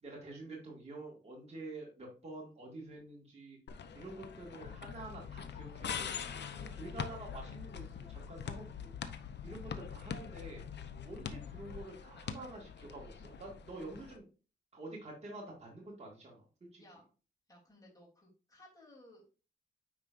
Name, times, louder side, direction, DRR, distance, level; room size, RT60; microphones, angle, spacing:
voice 1, 0.0-3.6 3.9-8.9 9.4-10.6 11.0-14.2 14.7-16.4 16.7-16.8, right 2 dB, 35° right, -3 dB, 2.0 m, -48 dB
sound 1, 3.7-14.2, left 7 dB, 65° left, 0.7 m, -45 dB
sound 2, 4.6-11.8, left 8 dB, 85° left, 0.4 m, -48 dB
voice 2, 17.5-19.3, left 1 dB, 20° left, -4 dB, 3.3 m, -59 dB
9.3 x 4.8 x 2.6 m, 0.36 s
wide cardioid pair, 120°, 20 cm